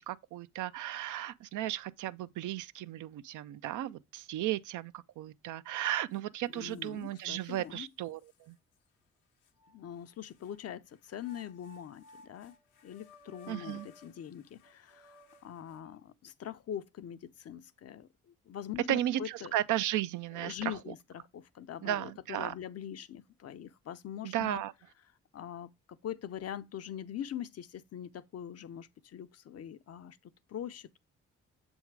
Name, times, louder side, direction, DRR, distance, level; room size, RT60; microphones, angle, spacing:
voice 1, 0.0-8.6 13.5-13.9 18.9-20.7 21.8-22.5 24.2-24.7, right 13 dB, 70° right, 0.5 m, -35 dB
sound 1, 6.1-6.2 6.7-7.6 8.3-8.4 9.4-10.6 11.2-16.1, left 3 dB, 75° left, 0.9 m, -57 dB
voice 2, 6.5-7.9 9.7-12.5 12.8-19.5 20.3-24.6 25.3-31.0, left 10 dB, 50° left, 0.6 m, -43 dB
7.1 x 3.6 x 4.6 m
supercardioid pair, 55°, 32 cm